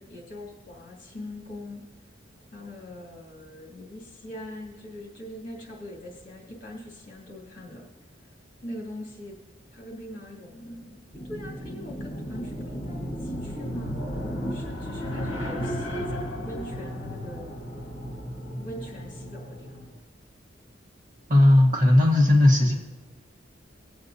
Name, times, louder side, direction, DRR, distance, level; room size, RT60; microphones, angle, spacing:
voice 1, 0.0-1.8 2.5-7.8 8.6-9.4 9.7-14.0 14.5-17.5 18.6-19.8, left 1 dB, 45° left, -3 dB, 2.6 m, -42 dB
sound 1, 11.1-19.9, equal, 65° left, 1.3 m, -34 dB
voice 2, 21.3-22.7, left 1 dB, 45° right, -1 dB, 1.5 m, -17 dB
21.5 x 7.9 x 2.7 m, 1.2 s
head